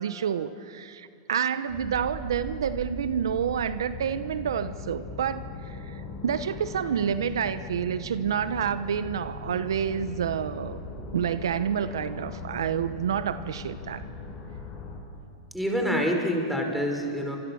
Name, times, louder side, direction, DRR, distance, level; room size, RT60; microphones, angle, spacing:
voice 1, 0.0-10.8 11.1-14.1, right 8 dB, 85° right, 13 dB, 1.0 m, -29 dB
sound 1, 1.7-15.0, left 3 dB, 35° left, 7.5 m, -39 dB
voice 2, 15.5-17.4, equal, ahead, 1 dB, 5.1 m, -26 dB
29.5 x 26.0 x 7.2 m, 2.6 s
hypercardioid pair, 115°, 2 cm